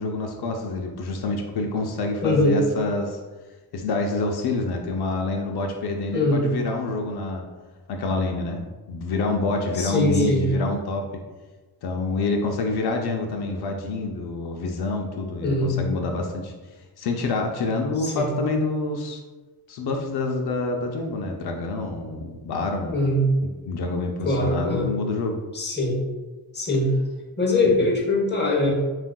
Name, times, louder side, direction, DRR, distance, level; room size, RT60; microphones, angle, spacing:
voice 1, 0.0-3.2 3.7-7.5 7.9-11.2 11.8-16.5 17.0-19.2 19.7-23.0 23.4-25.4 27.6-27.9, left 3 dB, 80° left, 2 dB, 0.6 m, -27 dB
voice 2, 2.2-2.5 6.1-6.4 9.8-10.5 15.4-15.8 18.0-18.3 22.9-23.2 24.2-24.8 25.5-26.0 26.5-26.9 27.4-28.7, left 2 dB, 25° left, -2 dB, 0.8 m, -22 dB
7.2 x 2.5 x 2.3 m, 1.3 s
wide cardioid pair, 175°, 38 cm